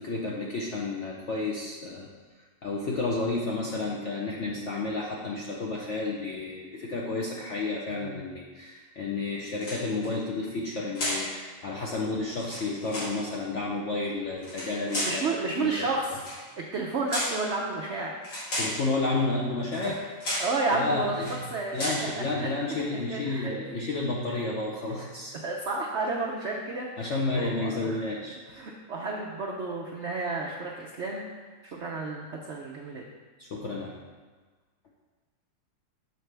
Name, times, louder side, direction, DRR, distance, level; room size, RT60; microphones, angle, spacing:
voice 1, 0.0-2.1 2.6-15.9 18.6-20.0 20.7-21.4 21.7-25.3 27.0-28.6 33.4-34.0, left 3 dB, 65° left, -3 dB, 0.7 m, -31 dB
sound 1, 9.5-10.1 10.9-11.3 12.3-13.2 14.4-15.2 16.1-16.4 17.1-17.4 18.2-18.8 19.7-19.9 20.2-20.6 21.1-21.4 21.7-22.1, left 1 dB, 85° left, 3.0 m, -33 dB
voice 2, 15.0-16.2 16.6-18.1 19.8-20.0 20.4-22.5 22.9-23.6 25.4-28.1 28.5-31.3 31.6-33.0, right 3 dB, 75° right, -1 dB, 0.6 m, -31 dB
6.7 x 6.6 x 3.3 m, 1.4 s
omnidirectional pair, 2.0 m